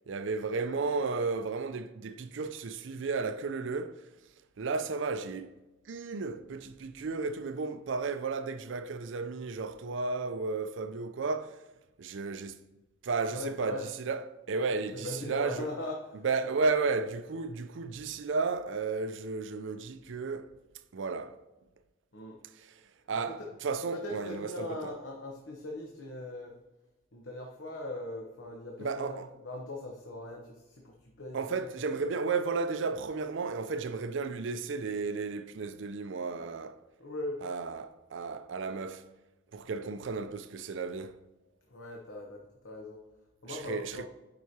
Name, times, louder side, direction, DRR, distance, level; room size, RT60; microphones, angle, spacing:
voice 1, 0.1-4.1 4.6-5.5 5.9-11.6 12.0-12.6 13.0-15.7 16.1-20.5 20.9-21.4 22.5-22.8 23.1-25.0 28.8-29.3 31.3-36.8 37.4-39.1 39.5-41.2 43.5-44.1, right 4 dB, 65° right, 0.5 m, -33 dB
voice 2, 13.3-13.9 14.9-16.2 22.1-22.4 23.1-23.5 23.9-26.5 27.1-32.1 37.0-37.4 41.7-43.0 43.4-44.1, left 2 dB, 70° left, 1.0 m, -40 dB
9.3 x 4.8 x 2.8 m
head